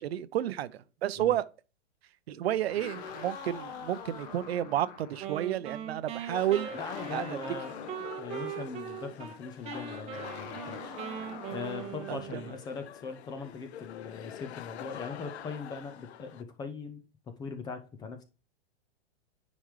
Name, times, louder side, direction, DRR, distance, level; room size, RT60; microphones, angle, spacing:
voice 1, 0.0-1.5 2.3-6.7 7.1-7.4 12.1-12.4, right 12 dB, 65° right, 0.7 m, -31 dB
sound 1, 2.5-5.3 6.7-8.2 10.1-12.1, left 5 dB, 40° left, 1.3 m, -44 dB
Wind instrument woodwind instrument, 5.2-9.4 9.6-12.6, right 9 dB, 20° right, 0.8 m, -41 dB
sound 2, 6.3-16.4, left 10 dB, 75° left, 0.7 m, -46 dB
voice 2, 6.7-10.9 11.5-18.2, left 5 dB, 10° left, 0.5 m, -41 dB
9.4 x 5.1 x 3.2 m
hypercardioid pair, 145°, 33 cm